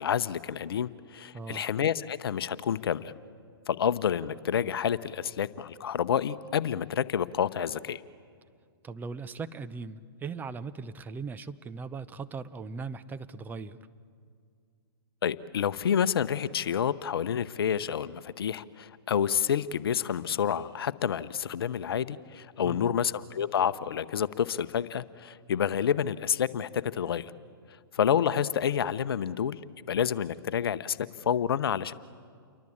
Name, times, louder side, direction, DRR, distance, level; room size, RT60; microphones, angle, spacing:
voice 1, 0.0-3.1 3.7-8.0 15.2-27.3 27.9-29.6 29.9-31.9, left 8 dB, 70° left, 15 dB, 0.9 m, -29 dB
voice 2, 8.8-13.9 22.6-23.0, right 4 dB, 15° right, 12 dB, 0.8 m, -39 dB
29.0 x 23.5 x 8.7 m, 2.2 s
hypercardioid pair, 125°, 13 cm